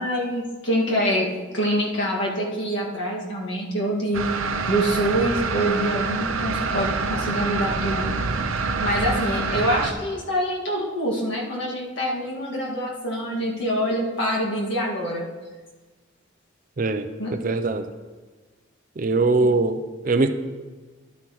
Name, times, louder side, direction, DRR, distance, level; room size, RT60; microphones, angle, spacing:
voice 1, 0.0-4.2 4.7-8.1 8.8-15.2 17.2-17.4, equal, 60° left, -3 dB, 1.9 m, -25 dB
sound 1, 4.1-9.9, right 4 dB, 80° right, 0.7 m, -26 dB
voice 2, 16.8-17.1 17.4-17.9 19.0-20.3, right 3 dB, 40° right, 9 dB, 0.4 m, -21 dB
11.5 x 9.0 x 3.1 m, 1.3 s
head